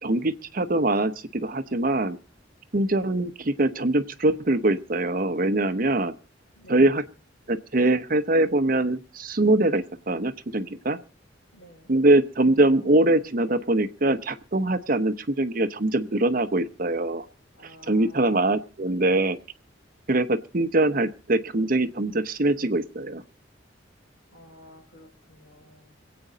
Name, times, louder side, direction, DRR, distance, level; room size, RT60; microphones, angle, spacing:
voice 1, 0.0-2.2 2.7-6.1 6.7-7.0 7.5-11.0 11.9-17.2 17.9-19.4 20.1-23.2, right 2 dB, 45° right, 11 dB, 0.9 m, -23 dB
voice 2, 6.5-7.1 11.5-11.9 17.5-18.5 24.3-26.0, equal, 80° left, 2 dB, 5.3 m, -52 dB
26.0 x 8.7 x 3.9 m, 0.34 s
head